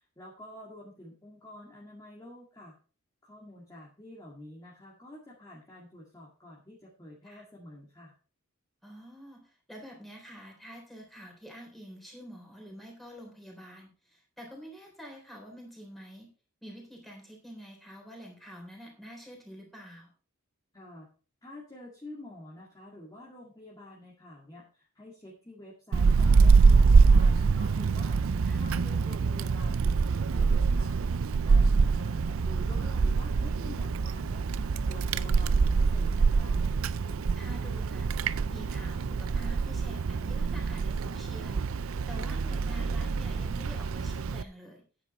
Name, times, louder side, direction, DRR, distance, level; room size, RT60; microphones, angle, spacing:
voice 1, 0.2-2.7 3.2-8.1 20.7-21.1 21.4-28.2 28.6-30.9 31.4-34.4 34.9-36.6, left 1 dB, 15° left, -5 dB, 2.0 m, -48 dB
voice 2, 8.8-16.3 16.6-20.1 28.4-28.6 37.3-38.1 38.5-44.8, equal, ahead, 0 dB, 3.7 m, -47 dB
Wind, 25.9-44.4, right 4 dB, 65° right, 0.4 m, -25 dB
9.9 x 9.2 x 4.2 m, 0.36 s
head